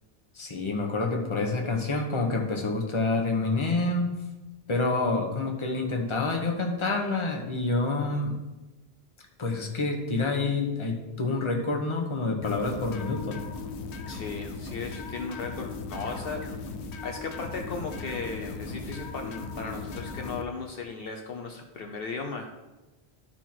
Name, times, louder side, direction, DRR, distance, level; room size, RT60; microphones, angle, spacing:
voice 1, 0.3-4.1 4.7-8.4 9.4-13.4, left 3 dB, 30° left, 1 dB, 1.1 m, -28 dB
sound 1, 12.4-20.4, left 4 dB, 85° left, 1.0 m, -37 dB
voice 2, 14.1-16.7 17.0-22.5, left 4 dB, 65° left, 2 dB, 0.9 m, -36 dB
12.0 x 4.4 x 4.4 m, 1.1 s
omnidirectional pair, 1.1 m